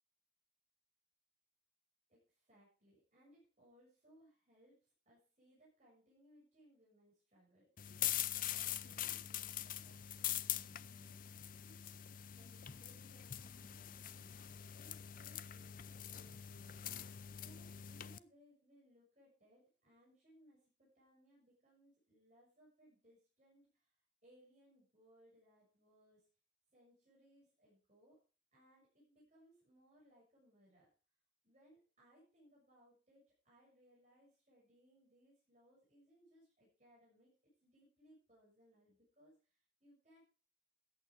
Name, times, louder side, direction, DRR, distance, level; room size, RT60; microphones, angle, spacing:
voice 1, 2.1-7.9 8.3-11.5 12.3-16.8 17.3-26.3 26.7-28.2 28.5-30.9 31.4-40.2, equal, 35° right, -5 dB, 6.8 m, -68 dB
sound 1, 7.8-18.2, left 12 dB, 45° left, 0.5 m, -43 dB
14.5 x 8.8 x 4.8 m, 0.36 s
head